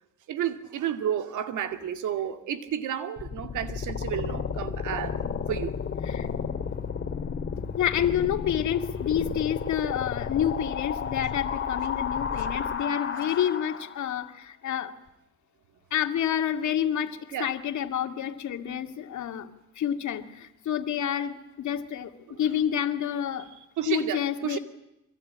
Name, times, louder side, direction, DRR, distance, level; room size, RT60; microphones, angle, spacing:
voice 1, 0.3-5.2 5.5-5.8 17.3-17.5 22.3-22.4 23.8-24.6, right 10 dB, 80° right, 2.3 m, -31 dB
sound 1, 3.2-14.1, left 6 dB, 40° left, 2.5 m, -32 dB
voice 2, 7.8-15.0 15.9-19.5 19.8-23.5 23.9-24.6, left 9 dB, 70° left, 2.3 m, -29 dB
25.0 x 23.5 x 8.8 m
cardioid pair, 90°, 30 cm